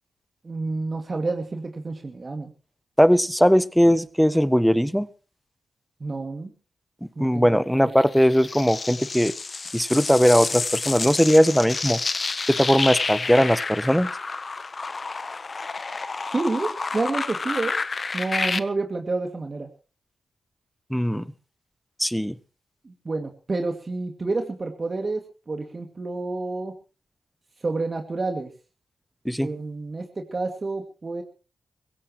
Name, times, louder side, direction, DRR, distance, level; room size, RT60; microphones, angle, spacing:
voice 1, 0.4-2.5 6.0-6.5 7.2-7.9 16.3-17.8 18.1-19.7 22.8-25.2 25.5-26.7 27.6-28.5 29.4-31.2, right 3 dB, 45° right, 4 dB, 2.4 m, -29 dB
voice 2, 3.0-5.1 7.2-9.3 9.7-12.0 12.5-14.1 20.9-21.2 22.0-22.4 29.2-29.5, equal, ahead, 16 dB, 1.1 m, -19 dB
sound 1, 8.0-18.6, left 4 dB, 45° left, 1.0 m, -29 dB
22.5 x 16.0 x 3.1 m, 0.36 s
supercardioid pair, 40°, 0 cm